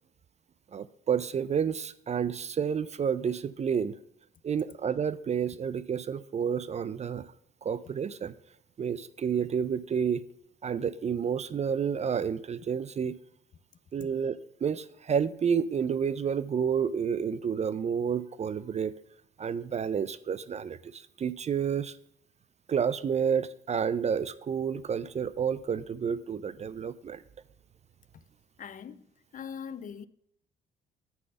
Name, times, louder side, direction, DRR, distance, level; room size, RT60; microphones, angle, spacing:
voice 1, 0.7-4.0 4.4-7.3 7.6-8.3 8.8-10.2 10.6-13.2 13.9-18.9 19.4-22.0 22.7-27.2, right 7 dB, 35° right, 0.4 m, -30 dB
voice 2, 28.6-30.1, left 7 dB, 40° left, 0.5 m, -42 dB
9.5 x 4.0 x 6.7 m
cardioid pair, 90°, 20 cm